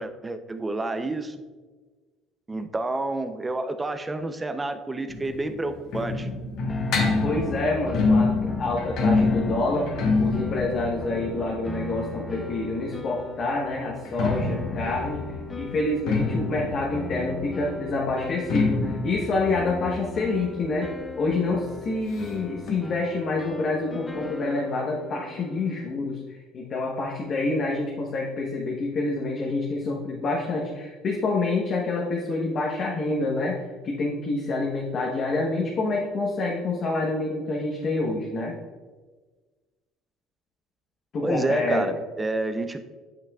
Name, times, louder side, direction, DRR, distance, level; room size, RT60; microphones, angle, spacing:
voice 1, 0.0-1.3 2.5-6.3 41.2-42.8, right 2 dB, 15° right, 9 dB, 0.6 m, -29 dB
sound 1, 5.1-12.8 13.9-21.3 21.6-21.7 21.9-22.0 22.7-22.8, left 3 dB, 65° left, 1.2 m, -27 dB
sound 2, 6.7-25.9, left 3 dB, 20° left, 0.8 m, -38 dB
voice 2, 7.2-9.9 10.2-38.6 41.1-41.9, left 2 dB, 45° left, -2 dB, 1.0 m, -27 dB
9.0 x 5.8 x 2.4 m, 1.3 s
supercardioid pair, 100°, 0 cm